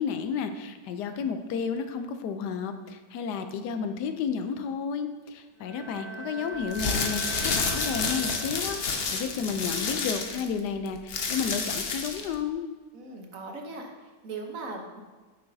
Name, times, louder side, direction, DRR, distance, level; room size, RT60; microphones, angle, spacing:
voice 1, 0.0-12.6, left 6 dB, 80° left, 8 dB, 1.2 m, -32 dB
Bowed string instrument, 5.6-9.0, right 2 dB, 85° right, 1.8 m, -40 dB
sound 1, 6.6-12.3, left 4 dB, 50° left, 0.8 m, -30 dB
voice 2, 12.9-15.0, right 3 dB, 55° right, 2 dB, 1.2 m, -39 dB
9.3 x 7.0 x 2.7 m, 1.3 s
omnidirectional pair, 1.8 m